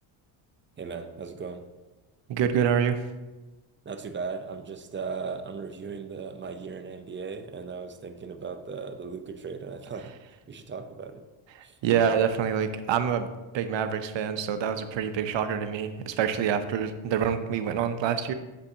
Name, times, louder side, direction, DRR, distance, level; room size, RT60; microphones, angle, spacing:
voice 1, 0.8-1.6 3.8-10.1 10.5-11.3 11.6-11.8, right 5 dB, 25° right, 7 dB, 0.6 m, -37 dB
voice 2, 2.3-3.0 11.8-13.3 13.5-18.3, right 8 dB, 60° right, 9 dB, 0.7 m, -26 dB
8.0 x 6.3 x 2.8 m, 1.1 s
cardioid pair, 90°, 50 cm